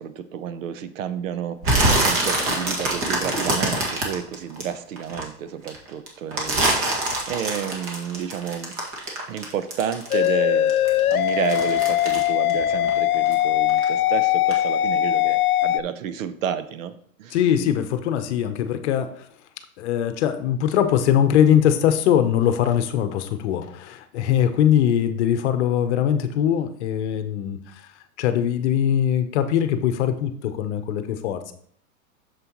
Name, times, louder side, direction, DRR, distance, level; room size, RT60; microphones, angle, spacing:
voice 1, 0.0-7.0 7.3-8.7 9.3-10.7 11.1-16.9 17.2-17.4, right 9 dB, 65° right, 12 dB, 0.8 m, -31 dB
sound 1, 1.6-5.2 5.6-10.4 10.7-13.4 13.7-14.1 14.5-14.6, right 2 dB, 30° right, 1.9 m, -24 dB
sound 2, 10.1-15.8, left 13 dB, 85° left, 0.5 m, -21 dB
voice 2, 17.3-19.3 19.8-27.8 28.2-31.5, left 9 dB, 50° left, 9 dB, 0.9 m, -21 dB
7.7 x 6.8 x 3.0 m, 0.62 s
hypercardioid pair, 130°, 42 cm